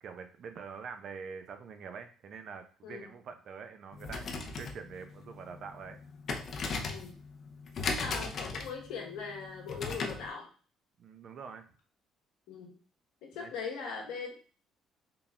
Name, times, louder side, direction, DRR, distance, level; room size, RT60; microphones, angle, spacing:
voice 1, 0.0-4.3 4.5-6.0 11.0-11.7 13.4-13.5, right 6 dB, 60° right, 7 dB, 0.6 m, -45 dB
Locked Door Handle Rattle multiple, 3.9-10.3, left 4 dB, 55° left, 0.6 m, -38 dB
voice 2, 7.8-10.5 12.5-12.8 13.2-14.3, left 5 dB, 80° left, 1 dB, 1.1 m, -40 dB
3.9 x 2.2 x 3.5 m, 0.38 s
supercardioid pair, 70°, 0 cm